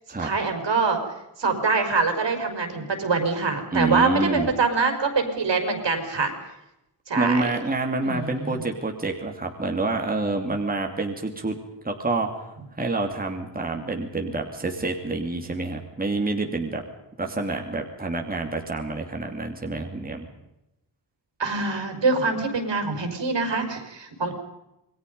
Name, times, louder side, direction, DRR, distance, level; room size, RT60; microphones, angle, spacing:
voice 1, 0.2-1.0 1.4-6.3 7.1-7.5 8.0-8.6 21.4-24.4, right 4 dB, 70° right, 5 dB, 5.3 m, -24 dB
voice 2, 3.7-4.5 7.2-11.6 11.8-16.8 17.2-20.3, right 2 dB, 20° right, 2 dB, 2.7 m, -27 dB
27.5 x 22.0 x 5.4 m, 0.90 s
wide cardioid pair, 130°, 44 cm